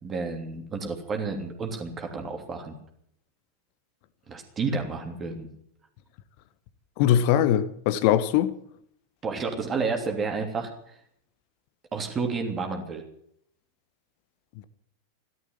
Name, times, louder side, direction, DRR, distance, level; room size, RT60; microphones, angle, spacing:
voice 1, 0.0-2.7 4.3-5.5 9.2-10.7 11.9-13.0, right 4 dB, 20° right, 3.1 m, -30 dB
voice 2, 7.0-8.5, left 11 dB, 45° left, 1.3 m, -21 dB
15.0 x 12.5 x 7.5 m
figure-of-eight pair, 90°, 0 cm